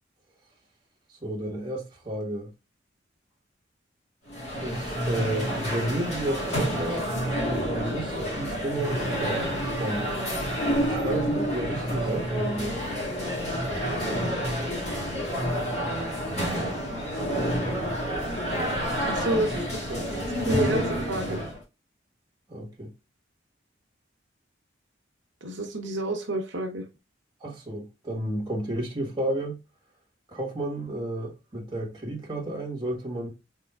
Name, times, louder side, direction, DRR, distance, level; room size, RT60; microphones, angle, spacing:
voice 1, 1.1-2.5 4.5-7.1 7.6-9.4 9.8-10.1 10.8-12.8 19.3-19.7 20.0-21.0 21.3-21.4 22.5-22.9 27.4-29.6 30.3-33.3, right 1 dB, 25° right, 1.4 m, -32 dB
sound 1, 4.3-21.6, equal, 35° left, 2.0 m, -29 dB
voice 2, 19.1-19.6 19.9-21.4 25.4-26.9, right 1 dB, 80° right, 0.9 m, -29 dB
4.5 x 3.7 x 2.4 m
head